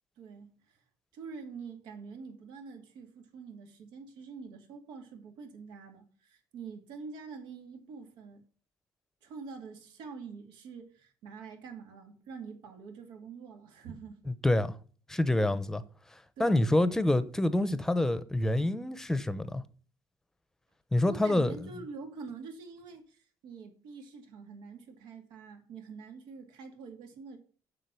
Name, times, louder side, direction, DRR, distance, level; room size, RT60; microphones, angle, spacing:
voice 1, 0.2-0.8 1.1-8.4 9.2-14.2 16.4-17.0 21.0-27.4, right 5 dB, 90° right, 2.3 m, -46 dB
voice 2, 14.4-14.7 15.1-15.8 16.1-19.6 20.9-21.7, left 1 dB, 5° left, 0.7 m, -27 dB
7.6 x 6.5 x 6.9 m
cardioid pair, 140°, 8 cm